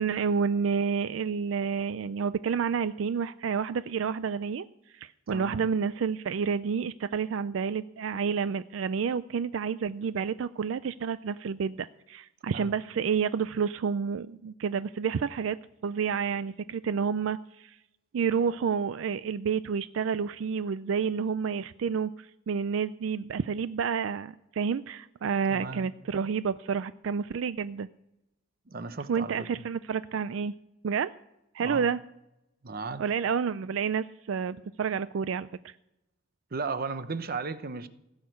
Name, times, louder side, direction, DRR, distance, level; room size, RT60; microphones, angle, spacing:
voice 1, 0.0-15.6 15.8-17.8 18.1-27.9 29.1-30.5 30.8-31.1 31.5-32.0 33.0-35.7, right 6 dB, 80° right, 0.4 m, -29 dB
voice 2, 5.3-5.7 12.5-12.7 25.5-25.9 28.7-29.5 31.6-31.9 32.6-33.0 36.5-37.9, right 4 dB, 50° right, 0.8 m, -35 dB
16.5 x 6.6 x 9.3 m
head